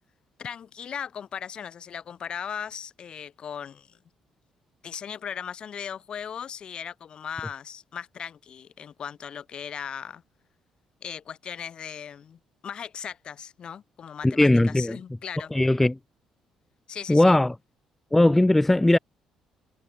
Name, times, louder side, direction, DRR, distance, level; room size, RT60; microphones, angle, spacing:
voice 1, 0.4-4.0 4.8-10.2 11.0-15.5 16.9-17.4, left 8 dB, 45° left, 1.0 m, -38 dB
voice 2, 14.2-15.0 15.5-16.0 17.1-17.6 18.1-19.0, left 1 dB, 10° left, 0.3 m, -19 dB
figure-of-eight pair, 45°, 2 cm